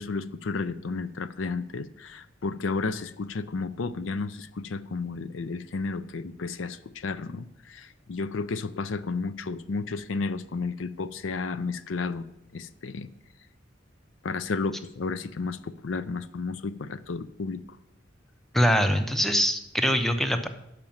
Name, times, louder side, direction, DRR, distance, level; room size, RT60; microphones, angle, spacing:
voice 1, 0.0-12.3 12.5-13.1 14.2-17.6, left 4 dB, 90° left, 15 dB, 0.5 m, -32 dB
voice 2, 18.5-20.5, equal, ahead, 7 dB, 0.7 m, -23 dB
10.5 x 5.1 x 7.2 m, 0.82 s
head